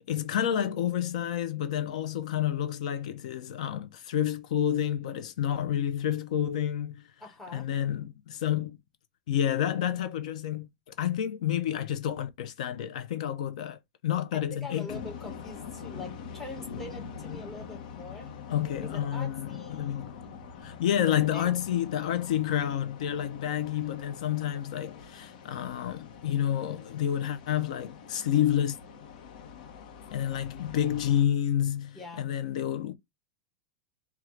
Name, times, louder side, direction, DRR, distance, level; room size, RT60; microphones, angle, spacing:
voice 1, 0.1-7.0 7.5-8.8 9.3-10.7 11.0-14.9 18.5-20.1 20.6-28.8 30.1-32.9, left 10 dB, 55° left, 0.5 m, -29 dB
voice 2, 7.2-7.7 14.3-18.3 18.9-20.1 21.3-21.8 31.9-32.3, left 2 dB, 5° left, 0.9 m, -44 dB
sound 1, 14.9-31.2, left 6 dB, 80° left, 0.9 m, -44 dB
4.4 x 2.3 x 3.7 m
supercardioid pair, 180°, 4 cm